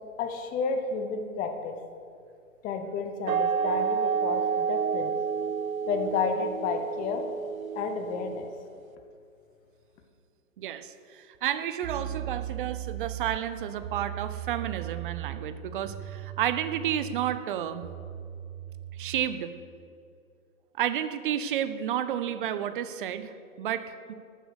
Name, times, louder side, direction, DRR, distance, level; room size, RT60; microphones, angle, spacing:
voice 1, 0.2-1.8 2.6-5.1 5.9-7.2 7.7-8.5, left 5 dB, 20° left, 5 dB, 1.1 m, -31 dB
sound 1, 3.3-8.7, right 6 dB, 75° right, 0.8 m, -30 dB
voice 2, 10.6-17.8 19.0-19.5 20.8-24.1, right 10 dB, 40° right, 11 dB, 0.8 m, -31 dB
sound 2, 11.3-11.4 11.8-19.3, right 12 dB, 15° right, 0.5 m, -38 dB
13.0 x 9.0 x 6.5 m, 2.4 s
hypercardioid pair, 130°, 42 cm